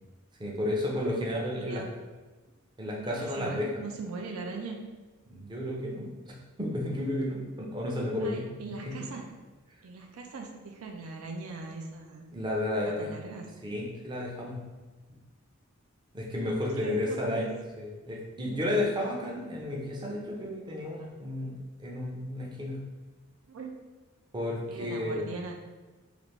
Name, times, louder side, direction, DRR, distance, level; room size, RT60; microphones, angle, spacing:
voice 1, 0.4-1.8 2.8-3.7 5.3-6.1 6.6-8.4 8.8-8.9 12.3-13.2 13.6-14.6 16.1-17.4 17.8-22.8 24.3-25.3, left 1 dB, 20° right, -3 dB, 0.5 m, -32 dB
voice 2, 1.6-1.9 3.0-4.8 8.2-9.3 9.8-12.3 12.8-13.5 16.7-17.5 18.1-18.2 23.5-23.7 24.7-25.5, right 4 dB, 85° right, 2 dB, 0.4 m, -40 dB
3.3 x 2.4 x 3.0 m, 1.2 s
head